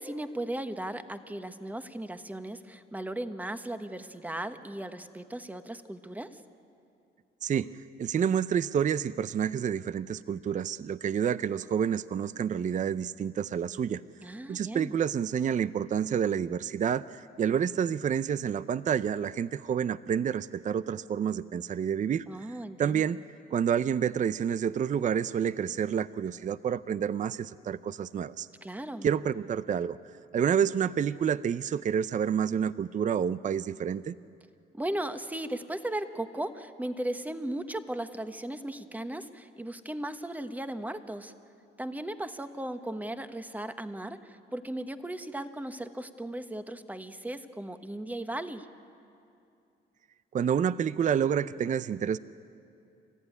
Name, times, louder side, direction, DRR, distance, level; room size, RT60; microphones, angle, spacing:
voice 1, 0.0-6.4 14.2-15.0 22.3-23.0 28.6-29.1 34.7-41.3 41.8-48.7, right 1 dB, 10° right, 9 dB, 1.2 m, -37 dB
voice 2, 7.4-14.0 14.5-22.3 22.8-23.2 23.5-28.5 29.0-30.0 30.3-34.1 50.3-52.2, right 8 dB, 40° right, 16 dB, 0.5 m, -29 dB
29.5 x 14.5 x 9.8 m, 2.6 s
cardioid pair, 90°, 20 cm